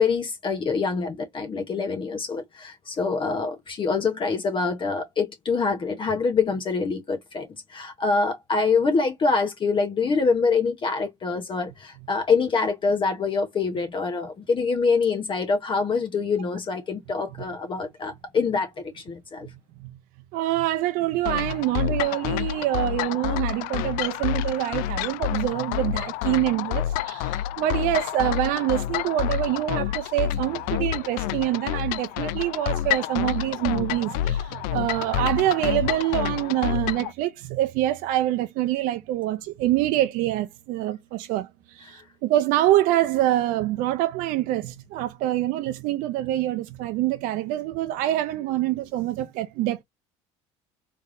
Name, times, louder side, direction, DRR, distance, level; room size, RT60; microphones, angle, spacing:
voice 1, 0.0-19.5 41.9-42.0, left 4 dB, 35° left, 0.9 m, -25 dB
voice 2, 20.3-49.8, right 14 dB, 65° right, 0.5 m, -25 dB
sound 1, 21.2-37.1, left 12 dB, 70° left, 0.4 m, -28 dB
3.3 x 3.3 x 2.5 m
hypercardioid pair, 80°, 15 cm